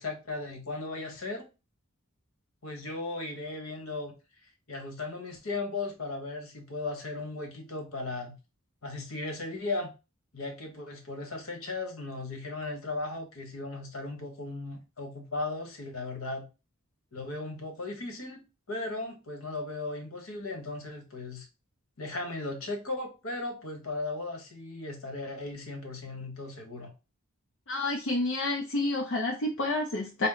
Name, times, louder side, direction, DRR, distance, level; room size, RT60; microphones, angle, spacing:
voice 1, 0.0-1.5 2.6-4.1 4.7-8.4 8.8-9.9 10.3-16.5 17.1-18.4 18.7-21.4 22.0-26.9, left 2 dB, 75° left, 3 dB, 1.2 m, -36 dB
voice 2, 27.7-30.3, left 2 dB, 60° left, 0 dB, 0.6 m, -29 dB
4.2 x 2.1 x 3.8 m, 0.30 s
head